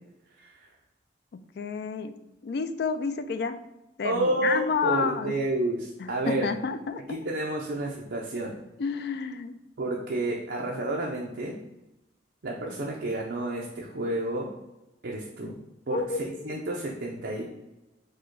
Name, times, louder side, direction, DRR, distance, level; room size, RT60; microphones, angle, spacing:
voice 1, 1.3-3.6 4.0-5.3 6.0-7.2 8.8-9.6 15.4-15.6 15.9-16.6, left 5 dB, 60° left, 11 dB, 0.3 m, -30 dB
voice 2, 4.0-6.5 7.1-8.6 9.8-11.6 12.4-14.5 15.0-15.6 15.9-17.4, right 2 dB, 65° right, -2 dB, 0.6 m, -30 dB
4.9 x 2.2 x 4.5 m, 0.97 s
head